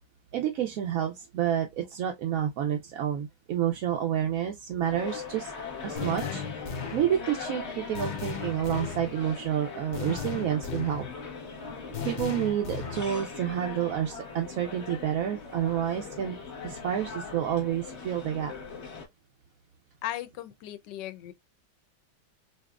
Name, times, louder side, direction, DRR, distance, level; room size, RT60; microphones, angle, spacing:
voice 1, 0.3-5.5 5.8-11.0 12.0-18.5, right 10 dB, 70° right, 0.8 m, -29 dB
sound 1, 4.8-19.1, left 5 dB, 45° left, 1.2 m, -40 dB
sound 2, 6.0-7.2 7.9-9.1 9.9-11.1 11.9-13.1, left 6 dB, 65° left, 0.4 m, -36 dB
voice 2, 20.0-21.3, left 13 dB, 80° left, 1.2 m, -37 dB
4.4 x 2.8 x 2.4 m
omnidirectional pair, 1.9 m